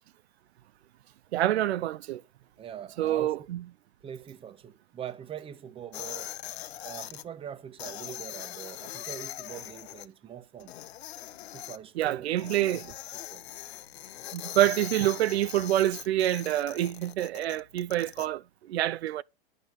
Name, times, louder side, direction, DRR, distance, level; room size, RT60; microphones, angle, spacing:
voice 1, 1.3-2.2 3.0-3.6 12.0-12.8 14.3-19.2, right 13 dB, 85° right, 0.6 m, -27 dB
voice 2, 2.6-3.3 4.0-6.3 6.8-10.7 11.5-12.4 12.7-13.5 15.0-15.1, right 9 dB, 15° right, 0.9 m, -43 dB
sound 1, 5.9-7.2 7.8-10.1 10.6-11.8 12.4-18.3, left 13 dB, 80° left, 0.8 m, -41 dB
11.0 x 5.7 x 7.4 m
hypercardioid pair, 135°, 31 cm